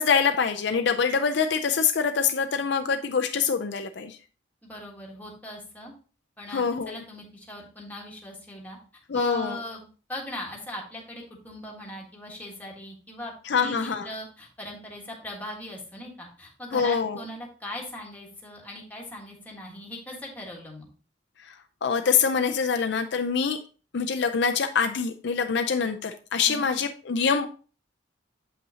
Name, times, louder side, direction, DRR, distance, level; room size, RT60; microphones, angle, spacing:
voice 1, 0.0-4.2 6.5-7.0 9.1-9.6 13.5-14.1 16.7-17.2 21.4-21.5 21.8-23.6 23.9-27.5, left 6 dB, 60° left, 6 dB, 0.4 m, -25 dB
voice 2, 4.6-5.9 6.4-8.8 9.1-20.9 26.5-26.7, left 1 dB, 10° left, -2 dB, 1.4 m, -39 dB
7.5 x 5.5 x 2.7 m, 0.37 s
head